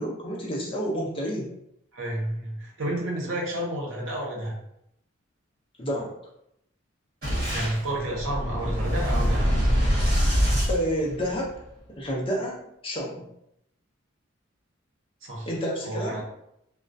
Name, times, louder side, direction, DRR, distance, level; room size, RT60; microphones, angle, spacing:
voice 1, 0.0-1.5 5.8-6.1 10.2-10.4 10.7-11.5 11.9-12.6 12.8-13.3 15.5-16.2, equal, 25° left, -3 dB, 0.5 m, -29 dB
voice 2, 1.9-4.6 7.5-9.5 15.2-15.5 15.8-16.2, right 1 dB, 70° right, -2 dB, 0.7 m, -30 dB
Boom, 7.2-11.6, equal, 45° right, 1.3 m, -24 dB
2.3 x 2.1 x 2.5 m, 0.78 s
head